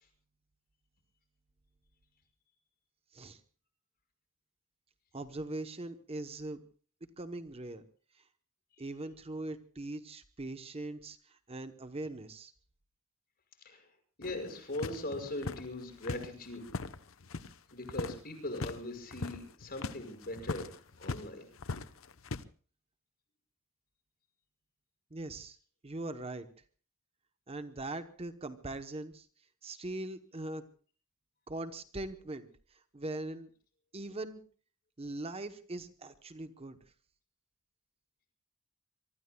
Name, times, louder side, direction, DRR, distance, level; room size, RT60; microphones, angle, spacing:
voice 1, 5.1-6.6 7.2-7.8 8.1-8.3 8.8-12.5 25.1-25.6 25.8-26.5 27.5-29.3 29.6-30.6 31.5-33.5 33.9-34.4 35.0-36.8, right 2 dB, 30° right, 10 dB, 0.9 m, -41 dB
sound 1, 14.2-17.6 17.8-18.2 18.5-18.8 19.1-21.3 21.6-22.4, left 3 dB, 70° left, 0.8 m, -40 dB
voice 2, 14.2-16.6 17.7-21.5, left 1 dB, 45° left, 5 dB, 5.7 m, -40 dB
25.0 x 23.5 x 2.2 m, 0.41 s
head